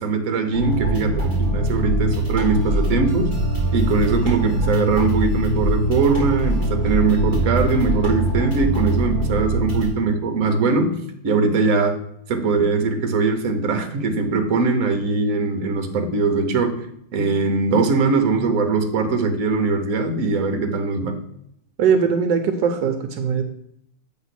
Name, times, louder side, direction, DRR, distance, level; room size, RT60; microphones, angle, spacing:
voice 1, 0.0-3.4 3.7-10.9 11.2-12.0 12.3-16.9 17.1-21.2, right 4 dB, 55° right, 5 dB, 1.1 m, -21 dB
sound 1, 0.5-9.9, right 1 dB, 40° left, 2.7 m, -22 dB
voice 2, 21.8-23.4, right 6 dB, 75° right, 6 dB, 1.2 m, -20 dB
8.0 x 3.3 x 5.8 m, 0.73 s
omnidirectional pair, 2.0 m